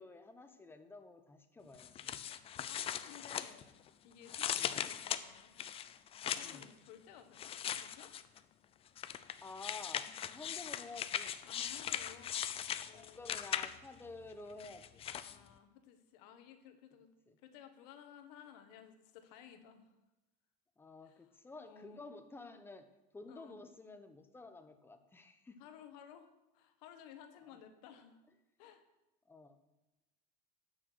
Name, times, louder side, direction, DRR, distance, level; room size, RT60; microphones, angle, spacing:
voice 1, 0.0-2.2 4.5-4.8 6.4-6.7 9.4-11.4 12.9-15.0 17.3-17.4 20.8-22.9 23.1-25.6 27.4-27.6 29.3-29.6, left 3 dB, 10° left, 8 dB, 0.9 m, -52 dB
sound 1, 1.8-3.9 4.3-6.6 7.4-8.4 9.0-14.0 14.6-15.4, left 10 dB, 25° left, 0.5 m, -40 dB
voice 2, 2.7-3.7 4.0-5.6 6.3-8.1 11.4-12.4 12.9-13.4 15.2-17.1 17.4-19.9 21.0-21.2 21.6-22.0 23.3-23.6 25.6-28.2 28.6-28.8, left 9 dB, 70° left, 7 dB, 1.6 m, -56 dB
11.5 x 6.5 x 6.5 m, 1.0 s
supercardioid pair, 135°, 21 cm